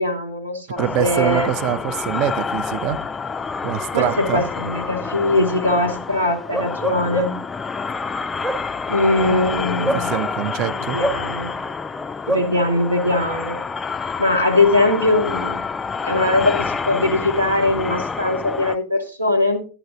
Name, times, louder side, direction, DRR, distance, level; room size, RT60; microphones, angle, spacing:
voice 1, 0.0-1.5 3.9-7.4 8.9-10.1 10.9-11.6 12.3-13.6 14.2-15.6 16.0-19.6, left 2 dB, 85° right, 1 dB, 1.3 m, -21 dB
sound 1, 0.8-18.8, left 5 dB, 15° left, 0.4 m, -28 dB
voice 2, 0.8-3.0 3.6-4.4 9.9-11.0, right 10 dB, 40° right, 15 dB, 0.6 m, -24 dB
Bark, 6.5-7.6 8.2-10.5 11.0-12.5, right 2 dB, 15° right, 1.1 m, -26 dB
11.0 x 10.5 x 2.7 m, 0.35 s
figure-of-eight pair, 90°, 0 cm